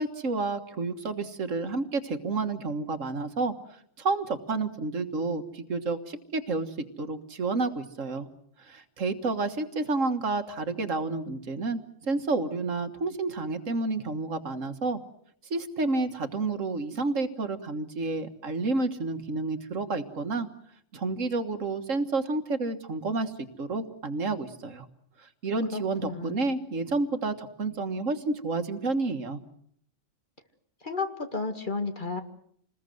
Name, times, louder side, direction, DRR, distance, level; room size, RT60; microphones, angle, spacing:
voice 1, 0.0-3.5 4.0-6.7 7.0-8.3 8.6-15.0 15.5-20.5 20.9-23.3 23.6-24.9 25.4-29.4, right 3 dB, 75° right, 8 dB, 1.9 m, -30 dB
voice 2, 25.7-26.4 30.8-32.2, left 4 dB, 40° left, 6 dB, 2.1 m, -32 dB
27.5 x 20.5 x 7.8 m, 0.65 s
omnidirectional pair, 1.3 m